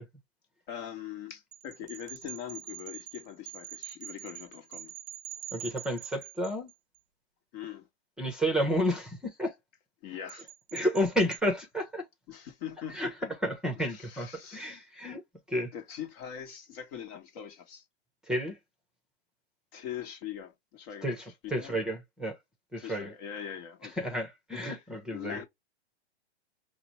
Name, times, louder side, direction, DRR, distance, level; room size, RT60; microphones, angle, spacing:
voice 1, 0.7-4.9 7.5-7.9 10.0-10.5 12.3-13.1 13.8-14.9 15.7-17.8 19.7-21.2 21.4-21.8 22.8-24.0 24.6-24.7 25.1-25.5, left 9 dB, 45° left, 1.3 m, -42 dB
sound 1, 1.5-7.0 10.3-11.4, right 13 dB, 35° right, 0.7 m, -44 dB
voice 2, 5.5-6.7 8.2-9.5 10.7-12.0 12.9-13.1 13.4-15.2 15.5-15.7 18.3-18.6 21.0-22.4 22.7-23.1 24.0-25.4, equal, ahead, 0.9 m, -31 dB
4.9 x 2.2 x 2.9 m
hypercardioid pair, 120°, 34 cm